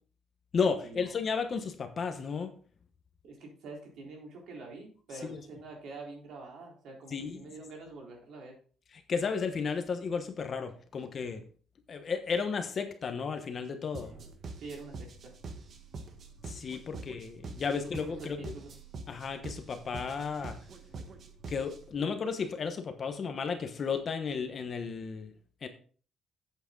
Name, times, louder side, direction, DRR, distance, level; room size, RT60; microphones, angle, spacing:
voice 1, 0.5-2.5 5.2-5.4 7.1-7.4 9.1-11.4 11.9-14.1 16.5-18.4 19.1-20.6 21.5-25.3 25.6-25.7, left 5 dB, 30° left, 7 dB, 1.1 m, -33 dB
voice 2, 3.2-8.5 14.5-15.3 18.1-18.7, right 3 dB, 60° right, 0 dB, 3.7 m, -46 dB
sound 1, 13.9-22.0, right 3 dB, 40° right, 1.1 m, -45 dB
8.6 x 7.9 x 3.9 m, 0.42 s
cardioid pair, 175°, 0 cm